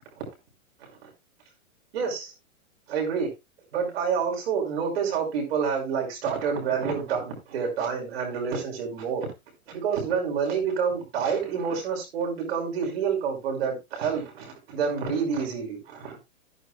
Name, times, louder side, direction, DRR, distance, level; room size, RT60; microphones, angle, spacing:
voice 1, 1.9-2.3 2.9-3.3 3.7-9.3 9.7-16.2, right 6 dB, 45° right, 5.6 m, -28 dB
13.5 x 11.0 x 2.3 m
hypercardioid pair, 175°, 43 cm